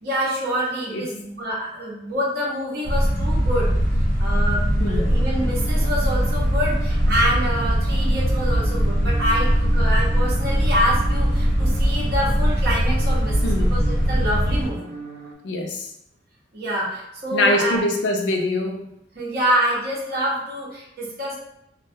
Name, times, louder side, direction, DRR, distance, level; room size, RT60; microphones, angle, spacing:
voice 1, 0.0-3.7 4.2-13.8 14.1-15.0 16.5-17.8 19.1-21.4, equal, 55° right, -6 dB, 0.7 m, -26 dB
sound 1, 2.8-14.7, equal, 40° left, 1.0 m, -21 dB
sound 2, 5.0-15.3, right 3 dB, 80° right, 0.4 m, -40 dB
voice 2, 15.4-15.9 17.3-18.8, left 2 dB, 70° left, 2 dB, 0.4 m, -23 dB
2.2 x 2.1 x 2.6 m, 0.81 s
head